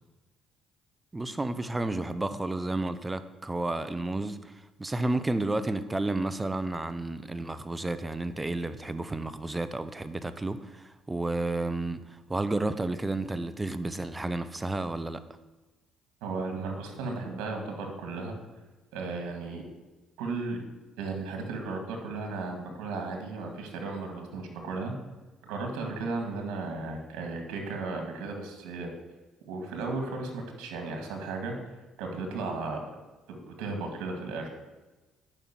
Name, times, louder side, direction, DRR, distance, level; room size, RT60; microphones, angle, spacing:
voice 1, 1.1-15.2, right 2 dB, 15° right, 0.8 m, -31 dB
voice 2, 16.2-18.3 18.9-19.7 20.2-20.6 21.0-24.9 25.4-28.9 29.5-31.5 32.0-32.8 33.3-34.5, right 3 dB, 90° right, 2.0 m, -35 dB
9.2 x 5.9 x 7.5 m
cardioid pair, 95°, 0 cm